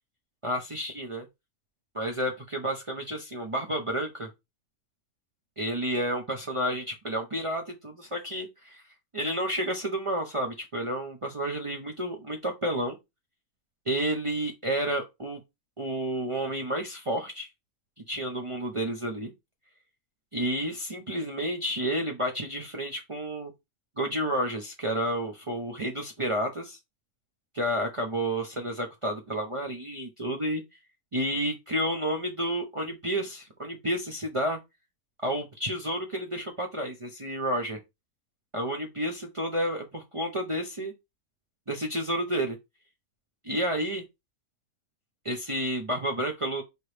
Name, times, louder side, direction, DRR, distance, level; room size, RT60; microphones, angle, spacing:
voice 1, 0.4-1.3 1.9-4.3 5.6-8.8 9.1-13.0 13.9-15.4 15.8-17.5 18.1-19.3 20.3-23.5 24.0-26.8 27.5-30.6 31.1-34.6 35.2-37.8 38.5-40.9 41.7-42.6 43.4-44.0 45.2-46.6, right 1 dB, 40° right, 0.4 m, -30 dB
4.7 x 2.9 x 3.2 m
omnidirectional pair, 1.5 m